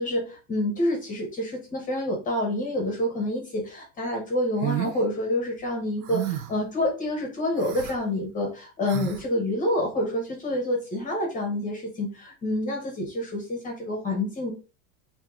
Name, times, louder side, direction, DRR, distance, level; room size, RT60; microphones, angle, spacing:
voice 1, 0.0-14.5, left 1 dB, 15° left, 1 dB, 0.9 m, -28 dB
sound 1, 4.6-5.0 6.0-6.6 7.5-8.0 8.8-9.2, right 12 dB, 65° right, 0.9 m, -31 dB
4.5 x 2.8 x 3.6 m, 0.33 s
supercardioid pair, 160°, 45 cm